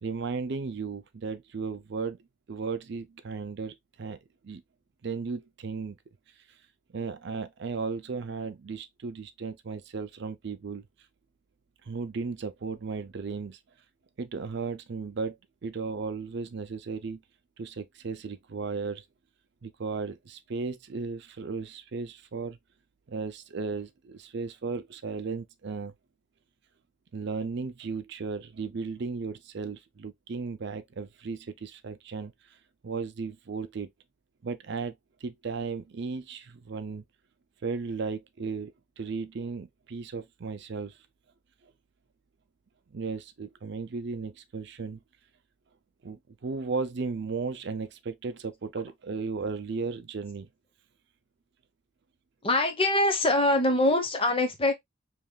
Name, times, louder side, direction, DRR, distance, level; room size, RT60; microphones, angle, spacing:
voice 1, 0.0-2.2 2.5-4.2 4.4-4.6 5.0-6.0 6.9-10.8 11.8-13.6 14.2-15.4 15.6-17.2 17.6-19.0 19.6-22.6 23.1-25.9 27.1-32.3 32.8-33.9 34.4-34.9 35.2-37.0 37.6-41.0 41.6-41.7 42.9-45.0 46.0-50.5, right 4 dB, 60° right, 0.5 m, -35 dB
voice 2, 52.4-54.7, left 2 dB, 30° left, 1.0 m, -23 dB
5.3 x 3.2 x 2.3 m
head